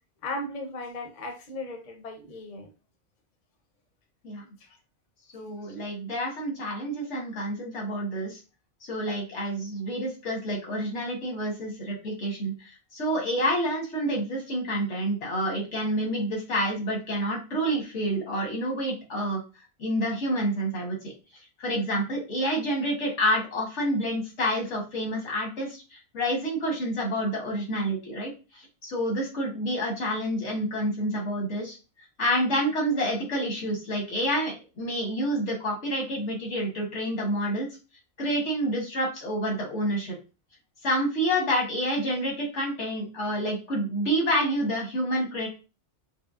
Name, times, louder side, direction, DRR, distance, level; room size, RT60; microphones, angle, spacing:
voice 1, 0.2-2.7 4.6-4.8 5.6-5.8, left 2 dB, 45° left, 4 dB, 0.7 m, -37 dB
voice 2, 5.3-8.4 8.8-19.4 19.8-21.1 21.6-31.8 32.2-37.7 38.2-40.2 40.8-45.5, equal, 85° left, -1 dB, 1.6 m, -28 dB
5.0 x 2.1 x 2.4 m, 0.31 s
omnidirectional pair, 1.2 m